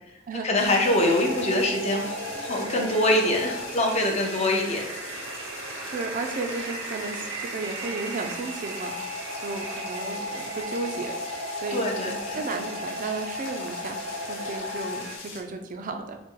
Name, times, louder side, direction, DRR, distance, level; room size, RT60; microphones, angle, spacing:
voice 1, 0.4-4.8 11.7-12.4, left 1 dB, 35° left, 1 dB, 0.6 m, -24 dB
sound 1, 0.5-15.4, left 4 dB, 70° left, 1.0 m, -42 dB
sound 2, 0.6-15.2, right 1 dB, 75° right, 0.7 m, -35 dB
voice 2, 5.9-11.2 11.6-14.0 14.3-16.2, right 3 dB, 45° right, 6 dB, 0.4 m, -34 dB
4.1 x 2.1 x 3.7 m, 0.95 s
head